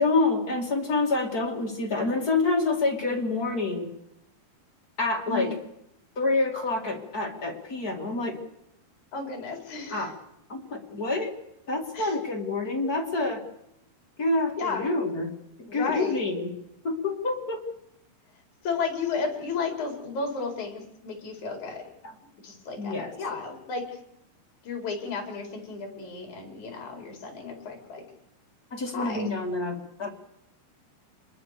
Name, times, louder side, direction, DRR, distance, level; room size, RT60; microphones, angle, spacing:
voice 1, 0.0-3.9 5.0-5.6 6.2-8.4 9.9-10.1 10.5-11.3 11.7-13.4 14.2-15.3 15.6-16.5 16.8-17.6 22.8-23.1 28.7-30.1, left 3 dB, 30° left, 1 dB, 2.3 m, -27 dB
voice 2, 9.1-10.1 11.9-12.1 14.6-14.9 15.7-16.2 18.6-21.8 22.4-24.0 24.6-28.0 28.9-29.3, left 4 dB, 50° left, 3 dB, 5.8 m, -33 dB
26.5 x 21.5 x 6.8 m, 0.82 s
omnidirectional pair, 4.5 m